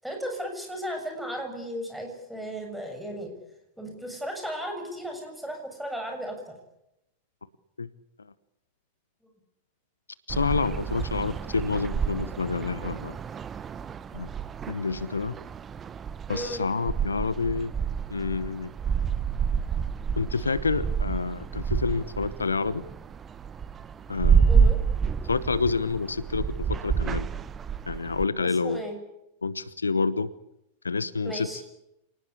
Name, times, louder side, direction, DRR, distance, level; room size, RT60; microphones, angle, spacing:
voice 1, 0.0-3.3 3.8-6.5 16.3-16.6 24.5-24.8 28.4-29.0 31.2-31.6, equal, ahead, 3 dB, 7.6 m, -35 dB
voice 2, 10.3-13.2 14.1-14.3 14.7-15.4 16.3-17.7 18.1-18.7 20.2-22.8 24.1-24.7 25.2-27.3 27.9-28.8 29.4-30.3 30.8-31.6, left 4 dB, 75° left, 18 dB, 0.9 m, -28 dB
sound 1, 10.3-28.3, right 6 dB, 20° right, 1.0 m, -28 dB
28.0 x 19.0 x 8.5 m, 0.84 s
figure-of-eight pair, 90°, 0 cm